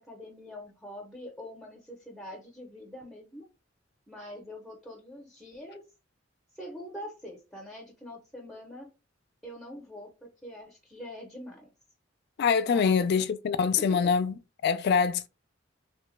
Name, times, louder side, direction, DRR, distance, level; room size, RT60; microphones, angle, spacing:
voice 1, 0.0-3.4 4.1-5.8 6.5-8.9 9.4-11.7 12.7-13.2 13.8-13.9, left 1 dB, ahead, 0.6 m, -44 dB
voice 2, 12.4-15.3, left 6 dB, 60° left, 0.3 m, -25 dB
2.8 x 2.2 x 3.0 m
head